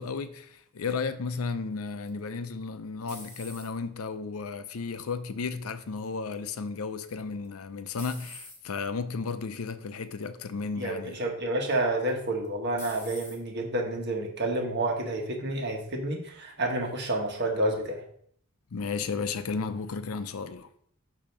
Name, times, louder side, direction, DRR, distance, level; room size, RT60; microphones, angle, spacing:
voice 1, 0.0-11.2 18.7-20.7, left 4 dB, 75° left, 0.5 m, -34 dB
sound 1, 2.1-4.0 4.5-5.1 7.1-7.5 8.0-8.6 9.4-9.6 10.0-10.1 12.1-12.5 12.8-13.4, left 2 dB, 10° left, 1.3 m, -46 dB
voice 2, 10.8-18.0, right 1 dB, 50° right, 1.3 m, -29 dB
8.5 x 2.9 x 6.0 m
head